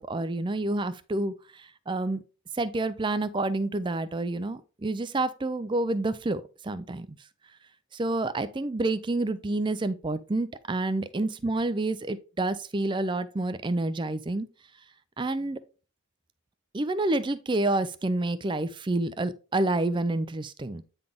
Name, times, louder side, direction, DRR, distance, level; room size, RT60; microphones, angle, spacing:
voice 1, 0.0-2.2 2.5-7.2 7.9-14.5 15.2-15.6 16.7-20.8, right 2 dB, 20° right, 0.4 m, -28 dB
9.0 x 4.0 x 3.5 m
head